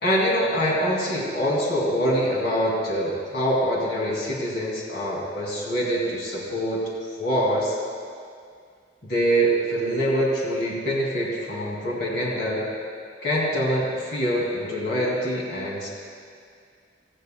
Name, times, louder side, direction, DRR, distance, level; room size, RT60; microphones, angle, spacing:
voice 1, 0.0-6.9 7.2-7.7 9.0-12.7 13.2-15.9, equal, 65° left, -5 dB, 2.9 m, -24 dB
18.5 x 15.0 x 2.4 m, 2.2 s
head